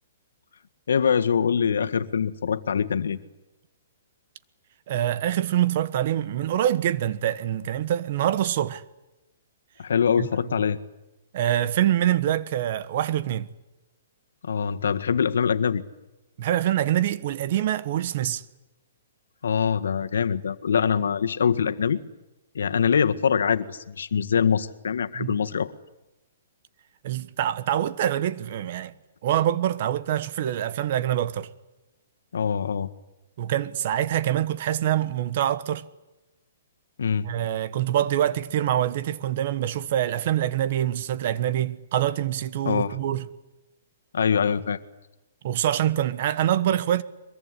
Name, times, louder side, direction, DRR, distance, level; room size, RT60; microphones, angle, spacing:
voice 1, 0.9-3.2 9.8-10.8 14.4-15.8 19.4-22.0 22.5-25.7 32.3-32.9 37.0-37.3 42.6-42.9 44.1-44.8, left 7 dB, 85° left, 1.7 m, -24 dB
voice 2, 4.9-8.8 10.2-10.5 11.3-13.5 16.4-18.4 25.1-25.4 27.0-28.9 29.2-31.5 33.4-35.8 37.2-43.3 45.4-47.0, right 11 dB, 40° right, 1.3 m, -25 dB
23.0 x 22.5 x 9.9 m
hypercardioid pair, 170°, 0 cm